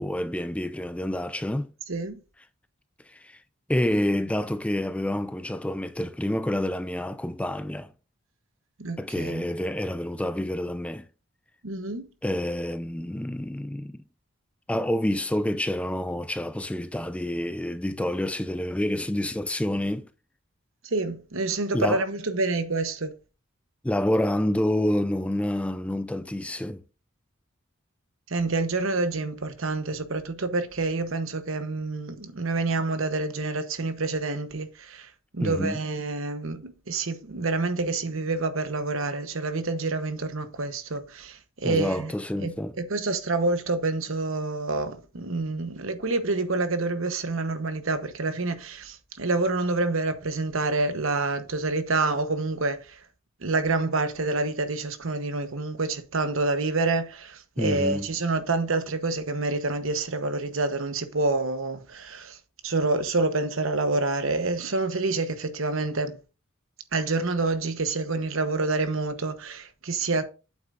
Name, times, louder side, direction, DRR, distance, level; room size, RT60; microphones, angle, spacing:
voice 1, 0.0-1.7 3.1-3.4 3.7-7.9 9.0-11.1 12.2-14.0 14.7-20.1 21.7-22.0 23.8-26.8 35.4-35.8 41.6-42.7 57.6-58.1, left 1 dB, 5° left, 0.3 m, -28 dB
voice 2, 1.9-2.2 8.8-9.4 11.6-12.0 20.8-23.2 28.3-42.1 42.4-53.0 53.4-62.4 62.6-66.2 66.9-70.2, right 3 dB, 70° right, 1.1 m, -27 dB
8.6 x 7.6 x 2.6 m
head